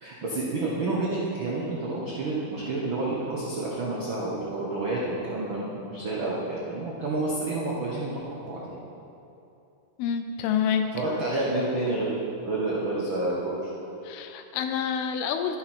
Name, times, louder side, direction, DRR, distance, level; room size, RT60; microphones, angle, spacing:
voice 1, 0.0-8.8 10.9-13.5, right 2 dB, 90° right, -5 dB, 1.1 m, -29 dB
voice 2, 10.0-10.9 14.0-15.6, left 8 dB, 90° left, 6 dB, 2.7 m, -27 dB
12.5 x 10.5 x 4.4 m, 2.8 s
omnidirectional pair, 4.4 m